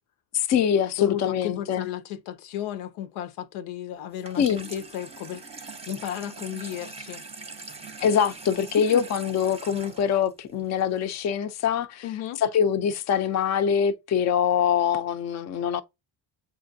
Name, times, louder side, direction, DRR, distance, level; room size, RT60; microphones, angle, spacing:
voice 1, 0.3-1.9 4.4-4.7 8.0-12.0 12.4-15.8, left 8 dB, 35° left, 0.4 m, -24 dB
voice 2, 1.0-7.2 8.7-9.1 12.0-12.4, left 11 dB, 85° left, 0.7 m, -34 dB
Water tap faucet / Sink (filling or washing), 4.1-11.2, right 3 dB, 15° right, 0.6 m, -42 dB
7.4 x 2.5 x 2.6 m
cardioid pair, 115°, 47 cm